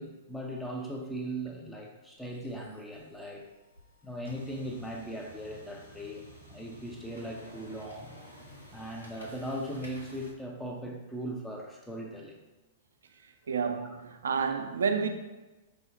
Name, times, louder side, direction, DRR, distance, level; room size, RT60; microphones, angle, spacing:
voice 1, 0.0-3.5 4.0-8.1 8.7-12.4 13.8-13.9, right 1 dB, 5° left, 0.5 m, -39 dB
sound 1, 2.2-10.3, equal, 90° left, 0.8 m, -52 dB
voice 2, 13.5-15.1, right 6 dB, 70° right, 0.4 m, -29 dB
4.9 x 2.0 x 4.0 m
figure-of-eight pair, 100°, 0 cm